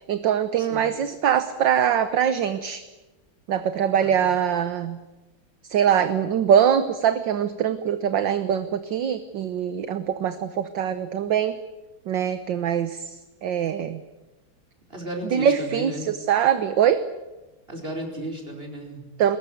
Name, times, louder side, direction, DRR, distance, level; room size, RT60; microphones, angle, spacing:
voice 1, 0.1-2.8 3.5-5.0 5.7-11.5 12.1-13.1 13.4-14.0 15.3-17.0 19.2-19.4, right 9 dB, 65° right, 10 dB, 1.6 m, -23 dB
voice 2, 14.9-16.1 17.7-19.1, right 1 dB, 25° right, 2 dB, 5.0 m, -34 dB
22.5 x 20.5 x 9.3 m, 1.1 s
omnidirectional pair, 2.4 m